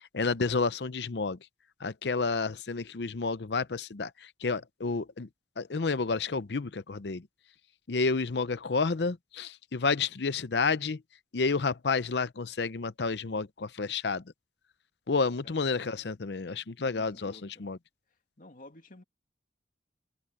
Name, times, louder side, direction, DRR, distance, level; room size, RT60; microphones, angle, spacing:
voice 1, 0.1-1.4 1.8-4.1 4.4-5.3 5.6-7.2 7.9-11.0 11.3-14.2 15.1-17.3 17.6-17.8, left 4 dB, 70° left, 0.7 m, -30 dB
voice 2, 16.7-17.7 18.4-19.0, left 1 dB, 50° left, 2.7 m, -52 dB
head